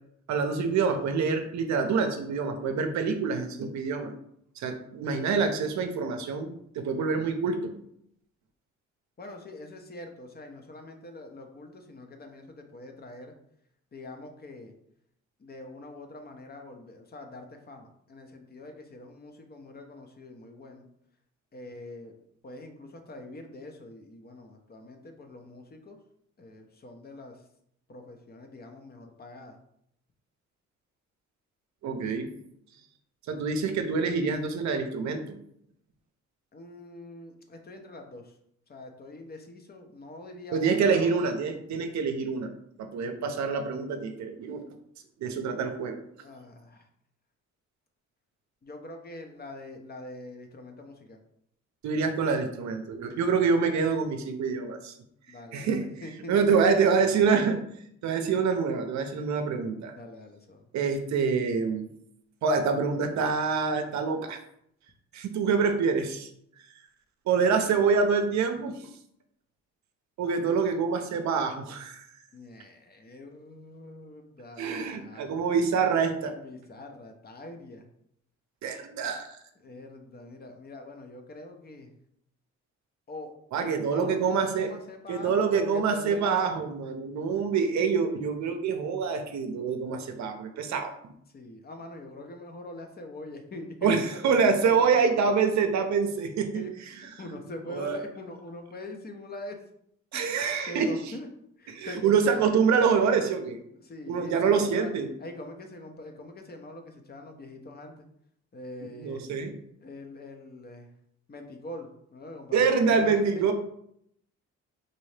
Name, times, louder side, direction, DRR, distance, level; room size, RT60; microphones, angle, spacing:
voice 1, 0.3-4.1 4.6-7.7 31.8-32.3 33.3-35.4 40.5-42.5 42.8-44.6 45.2-46.0 51.8-54.9 55.5-55.8 56.3-57.6 58.0-60.0 60.7-61.9 62.4-64.4 65.1-66.3 67.3-68.9 70.2-72.1 74.6-76.4 78.6-79.4 83.5-84.7 85.1-91.1 93.8-96.6 97.7-98.0 100.1-100.9 101.7-103.6 104.1-105.1 109.0-109.5 112.5-113.5, right 5 dB, 65° right, 6 dB, 0.6 m, -26 dB
voice 2, 9.2-13.3 13.9-14.7 15.4-20.9 21.5-22.1 22.4-26.0 26.4-27.3 27.9-29.6 36.5-38.3 38.7-41.1 43.2-43.4 46.2-46.8 48.6-51.2 53.1-53.4 55.3-56.9 59.9-60.6 72.3-75.4 76.2-77.9 79.6-81.9 83.1-83.3 83.6-86.5 91.3-94.9 96.5-99.6 100.1-100.4 100.7-101.3 101.6-102.5 103.7-104.9 105.2-108.1 108.5-109.3 109.8-110.9 111.3-113.5, left 2 dB, 30° left, 4 dB, 0.7 m, -43 dB
4.0 x 2.7 x 3.2 m, 0.72 s
cardioid pair, 90°, 30 cm